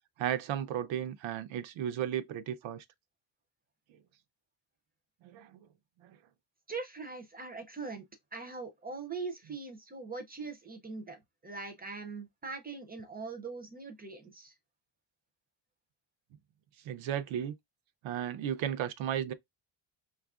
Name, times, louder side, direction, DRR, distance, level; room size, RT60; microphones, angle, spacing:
voice 1, 0.2-2.8 5.2-5.7 6.0-6.1 16.8-17.5 18.0-19.3, right 10 dB, 90° right, 0.6 m, -34 dB
voice 2, 6.7-8.0 8.3-14.5, right 4 dB, 20° right, 0.5 m, -41 dB
6.0 x 2.4 x 2.4 m
cardioid pair, 160°, 45 cm